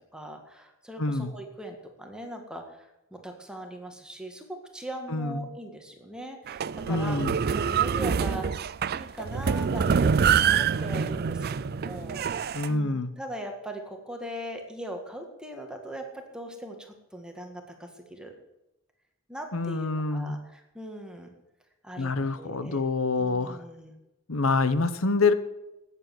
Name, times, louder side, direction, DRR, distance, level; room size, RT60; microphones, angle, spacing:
voice 1, 0.1-10.1 10.5-18.3 19.3-21.3 21.8-22.8 23.2-23.9, right 1 dB, 5° right, 3 dB, 1.8 m, -40 dB
voice 2, 1.0-1.3 5.1-5.5 6.9-7.4 12.5-13.1 19.5-20.4 22.0-23.6 24.3-25.3, left 3 dB, 80° left, 12 dB, 1.1 m, -26 dB
sound 1, 6.5-12.7, right 6 dB, 50° right, 0.4 m, -26 dB
14.0 x 9.8 x 7.9 m, 0.93 s
head